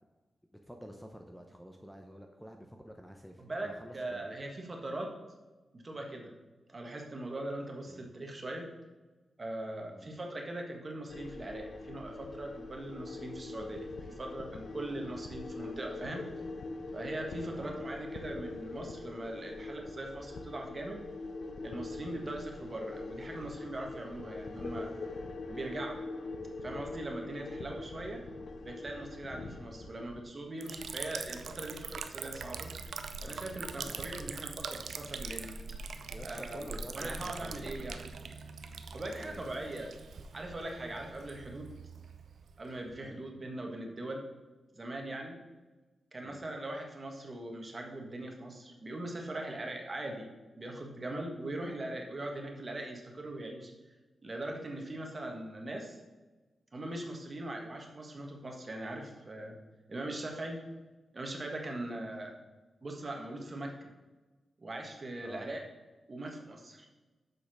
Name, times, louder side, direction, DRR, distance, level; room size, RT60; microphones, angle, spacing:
voice 1, 0.7-4.3 7.9-8.1 9.9-10.1 17.6-18.0 22.1-22.3 33.8-34.1 36.1-38.0 39.2-39.7 43.0-43.2 46.2-46.4 61.9-62.4 65.2-65.5, equal, ahead, 3 dB, 0.8 m, -49 dB
voice 2, 3.4-5.1 5.7-6.4 6.7-8.7 9.4-16.3 16.9-21.0 21.6-24.9 25.5-26.0 26.6-28.2 28.6-32.7 33.2-35.6 36.2-36.6 36.9-38.1 38.9-39.9 40.3-41.7 42.6-44.2 44.7-45.4 46.1-50.3 50.6-53.7 54.2-56.0 56.7-59.6 59.9-60.6 61.1-62.3 62.8-63.9 64.6-65.6 66.1-66.9, right 1 dB, 35° right, 2 dB, 1.5 m, -40 dB
sound 1, 11.1-30.2, left 3 dB, 70° left, 0.9 m, -43 dB
Liquid, 30.6-43.1, right 5 dB, 80° right, 0.6 m, -43 dB
6.6 x 5.5 x 6.2 m, 1.2 s
wide cardioid pair, 90°, 0 cm